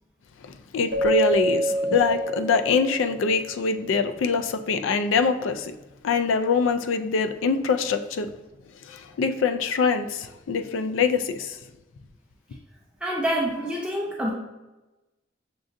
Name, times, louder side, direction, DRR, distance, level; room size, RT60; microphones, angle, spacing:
voice 1, 0.4-5.7 6.0-8.3 8.9-11.6, left 5 dB, 85° left, 8 dB, 0.4 m, -24 dB
Keyboard (musical), 0.9-3.4, right 1 dB, 55° right, 0.6 m, -26 dB
voice 2, 13.0-14.3, right 1 dB, 5° right, -3 dB, 0.4 m, -27 dB
6.0 x 2.5 x 2.5 m, 1.1 s
head